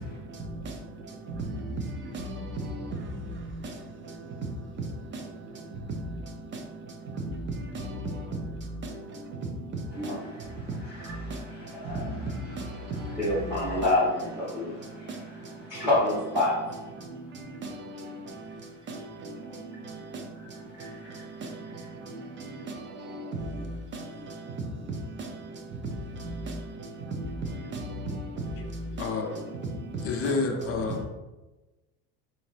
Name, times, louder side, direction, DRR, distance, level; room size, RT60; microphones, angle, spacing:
voice 1, 0.3-0.8 1.3-3.8 4.0-4.5 5.1-5.2 6.0-6.6 7.1-9.5 10.0-10.5 11.0-13.8 14.5-15.9 17.0-18.6 18.9-25.6 25.9-30.3, right 1 dB, 30° right, 0.6 m, -37 dB
voice 2, 10.8-11.2 11.6-12.3 13.1-14.7 15.7-16.5, left 1 dB, 5° right, 1.1 m, -27 dB
voice 3, 29.0-29.3 30.0-31.0, left 4 dB, 40° left, 0.5 m, -29 dB
3.6 x 2.7 x 3.4 m
cardioid pair, 125°, 37 cm